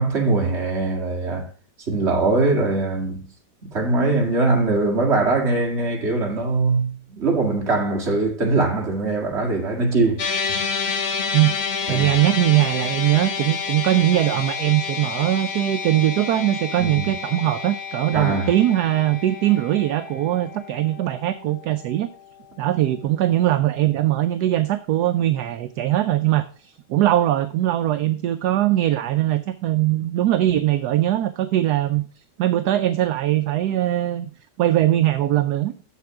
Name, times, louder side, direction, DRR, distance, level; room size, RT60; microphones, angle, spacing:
voice 1, 0.0-1.5 1.9-3.3 3.7-10.7 11.9-12.1 16.8-17.1 18.1-18.5, right 3 dB, 35° right, 2.2 m, -22 dB
sound 1, 10.2-22.6, left 5 dB, 45° left, 0.9 m, -29 dB
voice 2, 11.9-22.1 22.6-32.0 32.4-34.3 34.6-35.7, right 14 dB, 70° right, 1.0 m, -21 dB
7.5 x 7.0 x 4.8 m
omnidirectional pair, 2.0 m